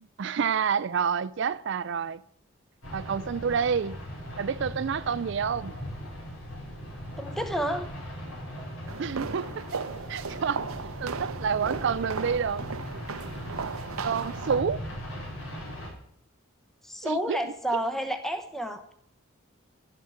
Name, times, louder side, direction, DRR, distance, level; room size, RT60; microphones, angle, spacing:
voice 1, 0.0-2.2 2.9-4.0 4.4-5.8 9.0-9.8 10.1-10.6 11.0-12.6 14.0-14.8 17.0-17.4, right 6 dB, 60° right, 0.4 m, -28 dB
sound 1, 2.8-15.9, equal, 90° left, 5.0 m, -39 dB
voice 2, 7.2-7.9 16.8-18.9, equal, ahead, 0.8 m, -30 dB
sound 2, 8.9-14.6, right 5 dB, 90° right, 0.7 m, -36 dB
12.0 x 7.2 x 8.7 m
head